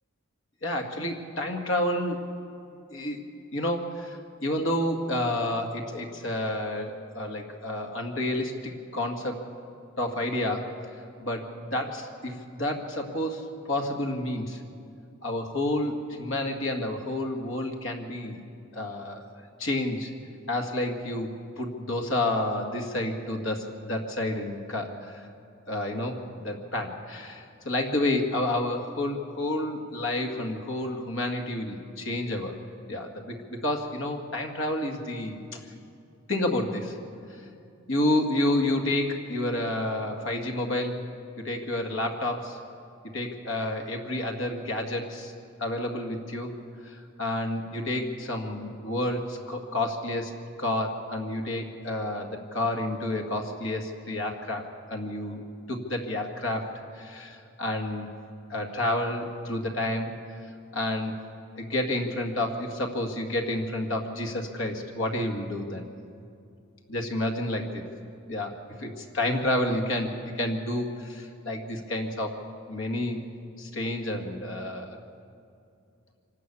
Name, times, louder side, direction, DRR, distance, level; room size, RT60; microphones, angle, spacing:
voice 1, 0.6-2.3 2.9-3.2 3.5-9.4 10.0-10.7 11.2-14.6 15.2-18.4 18.7-19.2 19.6-20.1 20.5-25.3 25.7-32.5 32.9-35.6 36.3-37.0 37.3-37.4 37.9-41.0 41.4-42.6 43.1-45.3 45.6-46.5 46.8-50.3 50.6-58.1 58.5-60.1 60.7-61.2 61.6-65.8 66.9-67.8 68.3-70.1 70.3-72.4 72.7-73.2 73.6-75.0, left 1 dB, 70° left, 3 dB, 2.0 m, -30 dB
25.0 x 12.5 x 8.5 m, 2.5 s
head